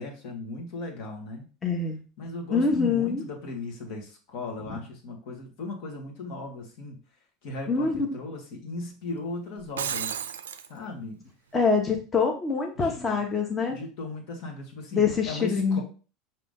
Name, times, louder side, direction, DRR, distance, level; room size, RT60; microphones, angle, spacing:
voice 1, 0.0-1.4 2.2-7.0 7.4-10.2 10.7-11.2 12.8-13.2 13.7-15.8, left 2 dB, 65° left, 1 dB, 1.3 m, -37 dB
voice 2, 1.6-2.0 2.5-3.2 7.7-8.1 11.5-13.8 14.9-15.8, left 5 dB, 25° left, 1 dB, 1.0 m, -25 dB
Shatter, 9.6-10.7, right 8 dB, 90° right, 0.3 m, -32 dB
4.9 x 2.9 x 3.6 m, 0.37 s
hypercardioid pair, 90°, 0 cm